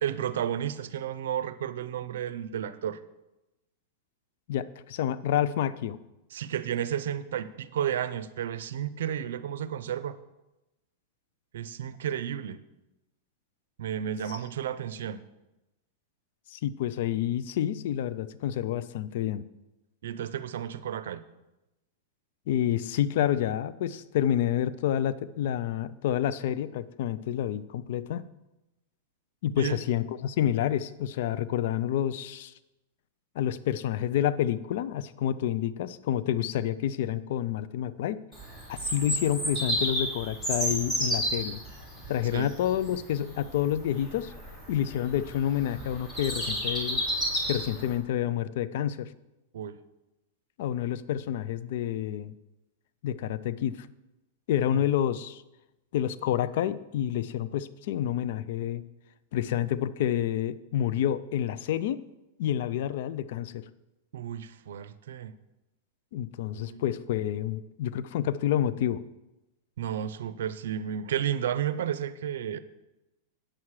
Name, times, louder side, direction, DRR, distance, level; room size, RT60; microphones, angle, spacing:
voice 1, 0.0-3.0 6.3-10.2 11.5-12.6 13.8-15.2 20.0-21.2 29.6-29.8 42.3-42.5 49.5-49.7 54.7-54.8 64.1-65.3 66.5-66.8 69.8-72.6, right 9 dB, 80° right, 14 dB, 0.6 m, -32 dB
voice 2, 4.5-6.0 14.3-14.4 16.5-19.4 22.5-28.3 29.4-32.5 33.4-38.2 38.7-41.6 42.1-44.3 44.7-47.0 47.4-49.1 50.6-52.3 53.0-53.9 54.5-55.4 55.9-58.8 59.3-62.0 62.4-63.6 66.1-69.0, left 11 dB, 65° left, 16 dB, 0.4 m, -29 dB
Bird vocalization bird call bird song, 38.3-48.0, equal, 15° left, 2.6 m, -32 dB
8.7 x 7.3 x 4.8 m, 0.98 s
supercardioid pair, 145°, 0 cm